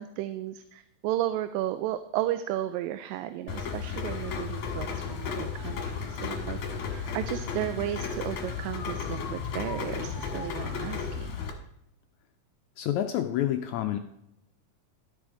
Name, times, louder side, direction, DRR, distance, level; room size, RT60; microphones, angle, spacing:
voice 1, 0.0-11.4, right 13 dB, 85° right, 11 dB, 2.2 m, -34 dB
Rain, 3.5-11.5, left 6 dB, 60° left, 2.6 m, -34 dB
voice 2, 12.8-14.0, left 11 dB, 85° left, 6 dB, 1.6 m, -28 dB
12.5 x 8.3 x 3.7 m, 0.82 s
omnidirectional pair, 4.0 m